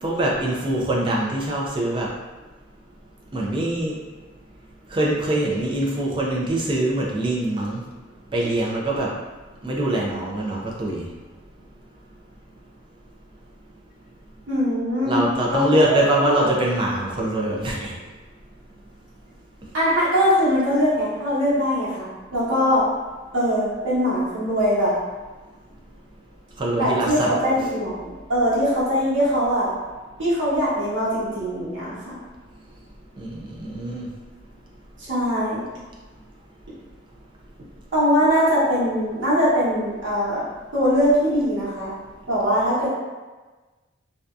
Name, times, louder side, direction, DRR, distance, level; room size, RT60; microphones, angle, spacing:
voice 1, 0.0-2.1 3.3-4.0 4.9-7.8 8.3-9.1 9.6-11.0 15.1-17.9 26.6-27.3 33.2-34.1, right 1 dB, 25° right, -3 dB, 0.4 m, -23 dB
voice 2, 14.5-16.4 19.7-22.8 23.3-24.9 26.8-29.7 30.2-32.1 35.0-35.6 37.9-40.4 40.7-41.9 42.3-42.9, equal, 70° right, -9 dB, 1.1 m, -21 dB
2.6 x 2.2 x 2.3 m, 1.2 s
head